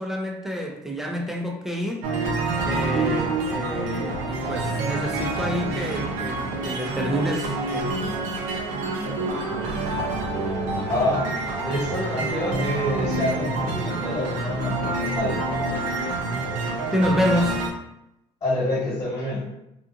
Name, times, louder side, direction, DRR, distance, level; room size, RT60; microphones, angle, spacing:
voice 1, 0.0-2.1 2.6-8.0 16.9-17.6, equal, 5° right, 1 dB, 0.5 m, -28 dB
sound 1, 2.0-17.7, right 2 dB, 80° right, 0.6 m, -27 dB
voice 2, 10.9-14.8 15.1-15.4 18.4-19.4, left 1 dB, 35° left, -8 dB, 1.4 m, -27 dB
2.8 x 2.4 x 2.4 m, 0.84 s
cardioid pair, 100°, 13 cm